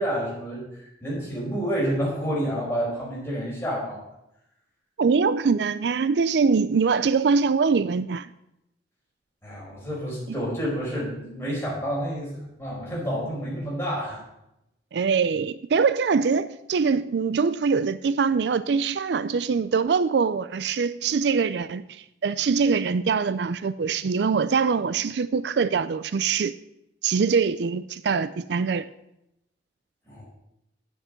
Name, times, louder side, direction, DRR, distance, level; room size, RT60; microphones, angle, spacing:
voice 1, 0.0-4.0 9.4-14.2 30.1-30.2, equal, 15° left, 5.0 m, -29 dB
voice 2, 5.0-8.3 10.3-10.4 14.9-26.6 27.0-28.9, right 5 dB, 65° right, 0.4 m, -23 dB
9.1 x 7.3 x 7.6 m
head